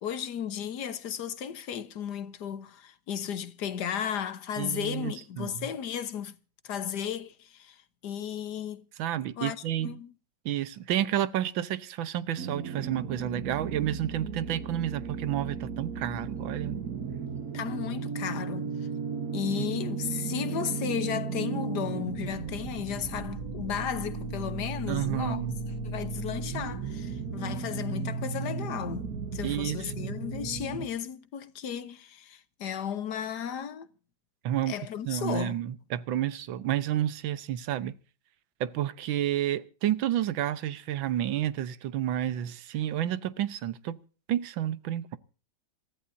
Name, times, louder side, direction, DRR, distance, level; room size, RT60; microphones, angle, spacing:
voice 1, 0.0-6.3 6.6-8.8 9.4-10.1 17.5-18.7 19.3-25.4 25.8-33.9 34.7-35.6, left 8 dB, 60° left, 1.5 m, -34 dB
voice 2, 4.6-5.7 9.0-10.0 10.4-16.8 19.4-19.7 24.9-25.6 29.4-30.2 34.4-34.7 35.1-37.9 38.6-44.0 44.3-45.2, right 11 dB, 80° right, 1.7 m, -30 dB
sound 1, 12.4-30.9, right 5 dB, 55° right, 1.5 m, -35 dB
sound 2, 16.2-29.2, equal, ahead, 6.8 m, -60 dB
27.5 x 14.0 x 2.6 m
omnidirectional pair, 2.1 m